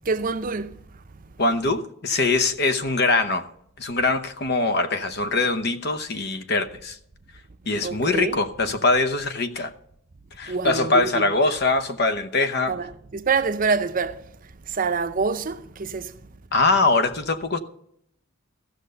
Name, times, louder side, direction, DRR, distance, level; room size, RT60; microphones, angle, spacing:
voice 1, 0.1-0.8 7.8-8.4 10.5-11.1 12.7-12.9 13.1-14.2 14.7-16.1, right 4 dB, 40° right, 0.6 m, -25 dB
voice 2, 1.4-3.5 3.8-7.0 7.7-9.7 10.4-12.8 16.5-17.6, left 3 dB, 55° left, 0.9 m, -22 dB
14.5 x 6.5 x 6.7 m
head